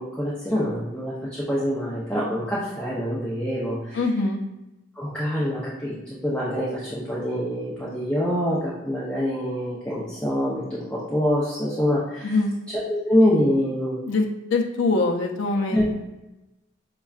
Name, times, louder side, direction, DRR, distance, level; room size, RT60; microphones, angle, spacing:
voice 1, 0.0-4.0 5.0-12.4 12.7-14.0 15.7-15.8, equal, 5° left, -8 dB, 0.5 m, -25 dB
voice 2, 4.0-4.4 12.2-12.5 14.1-15.8, left 3 dB, 70° left, 3 dB, 0.5 m, -23 dB
5.3 x 2.3 x 2.3 m, 0.99 s
head